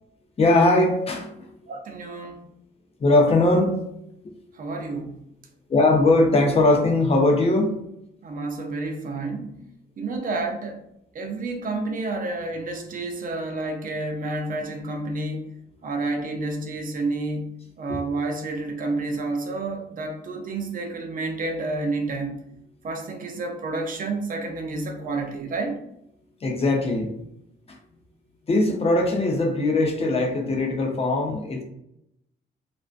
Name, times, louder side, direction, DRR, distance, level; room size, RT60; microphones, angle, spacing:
voice 1, 0.4-1.5 3.0-3.8 4.2-4.3 5.7-7.7 17.9-18.0 26.4-27.1 28.5-31.6, left 2 dB, 30° left, 1 dB, 0.6 m, -20 dB
voice 2, 1.7-2.4 4.6-5.2 8.2-9.6 10.0-10.8 11.1-15.5 15.8-17.5 17.8-22.4 22.8-25.8, right 2 dB, 45° right, 3 dB, 0.6 m, -30 dB
2.4 x 2.2 x 2.4 m, 0.78 s
cardioid pair, 90°, 20 cm